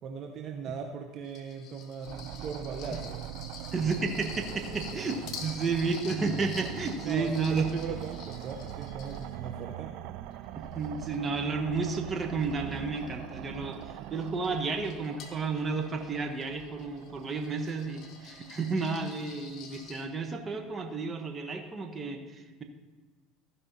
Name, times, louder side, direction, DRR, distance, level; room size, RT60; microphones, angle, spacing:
voice 1, 0.0-3.4 7.0-9.9, right 6 dB, 50° right, 3 dB, 0.9 m, -39 dB
sound 1, 1.2-9.8 10.3-20.1, left 6 dB, 50° left, 1.3 m, -49 dB
sound 2, 2.0-20.8, right 13 dB, 65° right, 0.4 m, -43 dB
voice 2, 3.7-7.6 10.5-22.6, right 4 dB, 30° right, 4 dB, 1.3 m, -32 dB
14.5 x 5.5 x 4.1 m, 1.2 s
hypercardioid pair, 80°, 0 cm